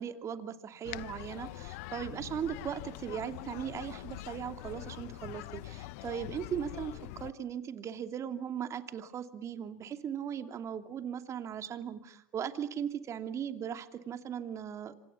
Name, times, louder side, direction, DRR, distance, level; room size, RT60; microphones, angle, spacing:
voice 1, 0.0-14.9, right 8 dB, 35° right, 8 dB, 2.7 m, -38 dB
sound 1, 0.8-7.3, left 18 dB, 65° left, 1.1 m, -44 dB
27.0 x 26.5 x 7.1 m, 0.73 s
hypercardioid pair, 100°, 9 cm